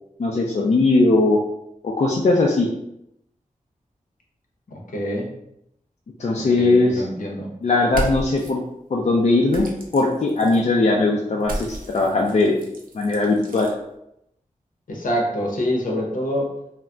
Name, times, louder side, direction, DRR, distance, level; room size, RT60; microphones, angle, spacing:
voice 1, 0.2-1.4 1.8-2.7 6.2-7.0 7.6-8.6 8.9-9.7 9.9-12.6 12.9-13.7, left 2 dB, 50° left, -1 dB, 0.4 m, -19 dB
voice 2, 4.7-5.3 6.3-7.5 14.9-16.5, equal, 70° left, -1 dB, 0.7 m, -26 dB
sound 1, 7.8-8.5 9.5-10.6 11.4-13.7, right 1 dB, 85° right, 0.5 m, -33 dB
2.2 x 2.1 x 3.7 m, 0.80 s
wide cardioid pair, 55°, 14 cm